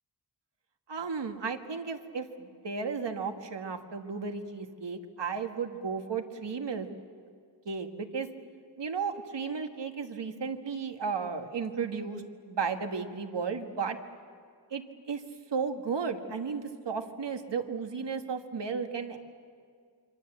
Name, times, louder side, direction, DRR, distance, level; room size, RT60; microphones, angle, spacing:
voice 1, 0.9-6.9 7.7-8.3 8.8-14.0 14.7-14.8 15.1-15.2 15.5-19.2, right 5 dB, 80° right, 5 dB, 1.8 m, -34 dB
27.0 x 25.0 x 7.9 m, 2.1 s
wide cardioid pair, 110°, 42 cm